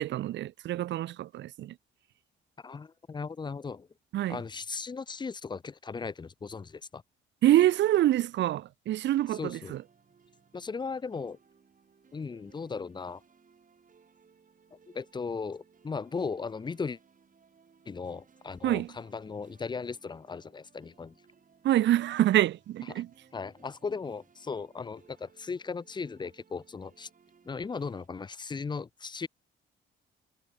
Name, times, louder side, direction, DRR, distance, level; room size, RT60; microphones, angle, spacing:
voice 1, 0.0-1.7 4.1-4.4 7.4-9.8 18.6-18.9 21.6-23.1, right 13 dB, 65° right, 0.5 m, -26 dB
voice 2, 2.6-3.9 4.3-7.0 9.3-9.7 10.5-11.4 12.1-13.2 14.7-17.0 17.9-21.1 22.9-23.0 23.3-27.1 27.5-29.3, left 5 dB, 20° left, 0.5 m, -37 dB
sound 1, 9.2-28.1, right 6 dB, 40° right, 7.5 m, -63 dB
cardioid pair, 90°, 20 cm